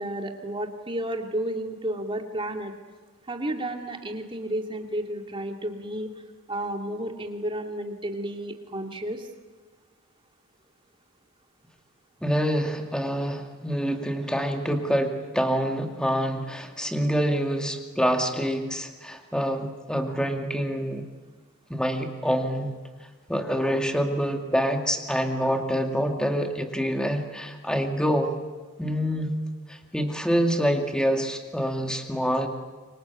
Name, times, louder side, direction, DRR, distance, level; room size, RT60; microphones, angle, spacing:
voice 1, 0.0-2.7 3.3-6.1 6.5-9.3, right 1 dB, 25° right, 3 dB, 2.6 m, -32 dB
voice 2, 12.2-21.0 21.7-22.7 23.3-28.3 28.8-29.4 29.7-32.5, equal, 5° left, 4 dB, 2.3 m, -26 dB
28.0 x 25.0 x 8.3 m, 1.3 s
head